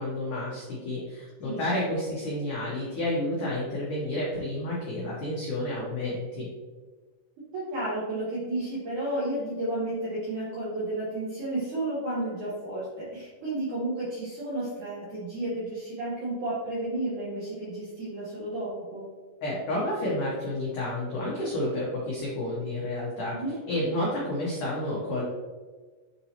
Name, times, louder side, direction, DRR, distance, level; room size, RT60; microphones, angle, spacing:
voice 1, 0.0-6.5 19.4-25.2, left 1 dB, 85° left, -6 dB, 1.7 m, -30 dB
voice 2, 7.5-19.0 23.3-23.6, right 1 dB, 70° right, -8 dB, 1.9 m, -32 dB
8.5 x 4.0 x 2.9 m, 1.4 s
omnidirectional pair, 5.5 m